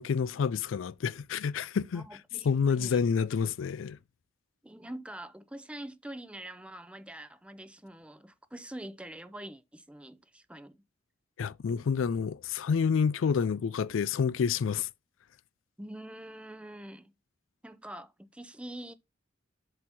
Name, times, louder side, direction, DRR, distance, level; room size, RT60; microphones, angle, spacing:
voice 1, 0.0-2.0 2.4-4.0 11.4-14.9, left 6 dB, 75° left, 0.4 m, -28 dB
voice 2, 1.9-3.1 4.6-10.8 15.8-17.1 17.6-18.9, right 1 dB, 5° right, 0.5 m, -45 dB
7.8 x 2.8 x 6.0 m
head